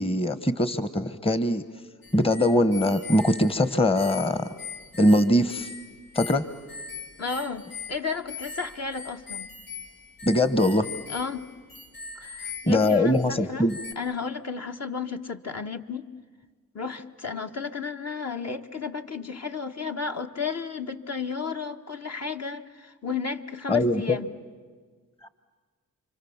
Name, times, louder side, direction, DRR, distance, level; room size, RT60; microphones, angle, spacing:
voice 1, 0.0-1.6 2.1-4.5 5.0-5.7 6.1-6.4 10.2-10.9 12.7-13.7 23.7-24.2 25.2-25.3, left 1 dB, 15° left, 13 dB, 1.2 m, -22 dB
sound 1, 2.0-13.4 13.7-13.9, left 5 dB, 75° left, 1.8 m, -41 dB
voice 2, 7.2-9.5 11.1-11.5 12.2-13.7 13.9-16.1 16.7-24.3, left 5 dB, 45° left, 4 dB, 1.5 m, -33 dB
29.0 x 25.5 x 7.3 m, 1.5 s
supercardioid pair, 45°, 36 cm